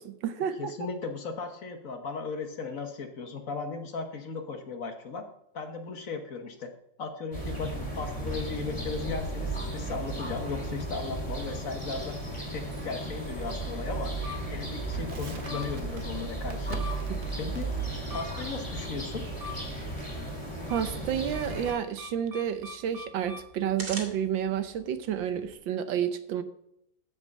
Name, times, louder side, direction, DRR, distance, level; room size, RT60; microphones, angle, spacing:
voice 1, 0.0-0.7 20.7-26.4, right 9 dB, 85° right, 10 dB, 1.6 m, -30 dB
voice 2, 0.6-5.2 5.5-6.7 7.0-12.2 12.5-14.1 14.5-16.8 17.4-17.7 18.1-19.2, left 4 dB, 50° left, 6 dB, 1.6 m, -36 dB
sound 1, 7.3-21.7, right 2 dB, 20° left, 3.1 m, -35 dB
sound 2, 12.6-25.5, left 1 dB, 65° right, 2.5 m, -46 dB
Crackle, 15.1-21.9, right 3 dB, 35° right, 1.0 m, -48 dB
14.5 x 5.3 x 5.4 m, 0.77 s
omnidirectional pair, 2.0 m